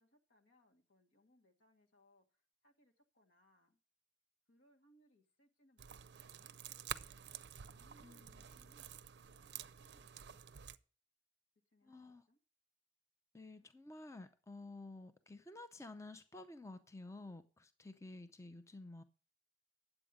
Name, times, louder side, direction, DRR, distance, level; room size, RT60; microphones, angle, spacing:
voice 1, 0.0-3.8 4.5-6.5 7.7-9.0 9.3-10.6 11.7-12.4, equal, 85° left, 2.0 m, -72 dB
sound 1, 5.8-10.8, right 9 dB, 60° right, 0.5 m, -50 dB
voice 2, 8.0-8.4 11.8-12.2 13.3-19.0, left 2 dB, 15° left, 0.5 m, -52 dB
9.9 x 8.0 x 5.0 m
head